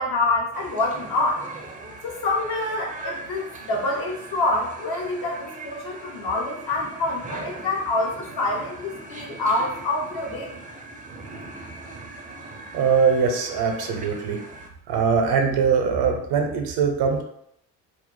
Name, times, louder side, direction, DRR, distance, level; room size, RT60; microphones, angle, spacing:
voice 1, 0.0-1.4 2.0-10.5, left 2 dB, 60° left, -1 dB, 0.9 m, -26 dB
sound 1, 0.5-14.7, right 2 dB, 20° right, 0.5 m, -40 dB
voice 2, 12.7-14.4 14.9-17.2, right 6 dB, 60° right, 4 dB, 0.6 m, -22 dB
2.3 x 2.0 x 3.0 m, 0.72 s
hypercardioid pair, 50°, 43 cm